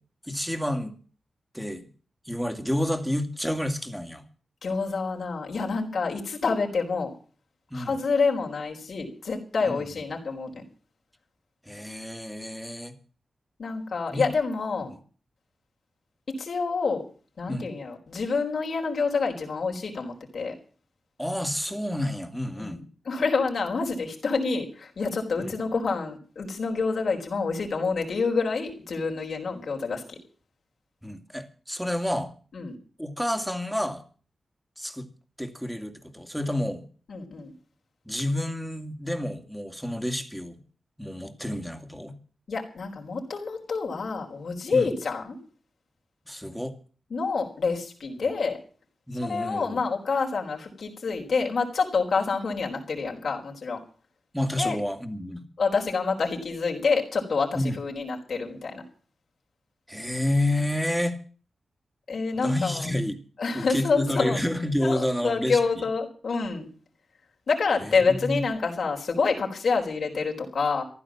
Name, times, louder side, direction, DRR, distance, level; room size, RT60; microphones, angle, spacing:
voice 1, 0.3-0.9 1.5-1.9 2.3-4.2 7.7-8.0 9.7-9.8 11.7-12.9 14.1-14.3 14.9-15.0 17.5-17.7 21.2-22.8 25.4-25.6 31.0-32.3 33.0-34.0 34.8-35.1 35.4-36.8 38.1-40.6 41.0-42.1 44.7-44.9 46.3-46.8 49.1-49.8 54.3-55.4 57.5-57.8 59.9-61.2 62.3-63.2 63.5-65.8 67.8-68.4, left 1 dB, ahead, 7 dB, 2.5 m, -29 dB
voice 2, 4.6-7.1 7.7-10.6 13.6-14.9 16.4-17.0 17.4-20.5 22.5-30.2 32.5-32.7 37.1-37.5 42.5-45.4 47.1-48.6 49.2-53.8 54.6-54.8 55.6-58.8 62.1-62.9 63.4-64.4 64.8-66.7 67.5-70.8, left 4 dB, 70° left, -1 dB, 4.4 m, -27 dB
15.0 x 11.5 x 7.4 m, 0.41 s
cardioid pair, 50°, 0 cm